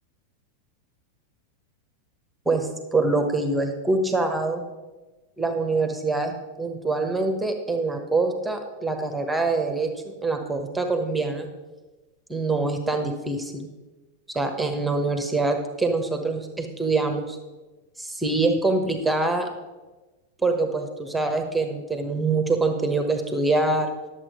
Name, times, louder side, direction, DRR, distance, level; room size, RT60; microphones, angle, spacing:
voice 1, 2.4-4.6 5.4-11.5 12.3-13.7 14.3-17.4 18.0-19.5 20.4-23.9, right 3 dB, 5° right, 5 dB, 1.2 m, -25 dB
10.5 x 7.4 x 5.0 m, 1.2 s
figure-of-eight pair, 90°, 0 cm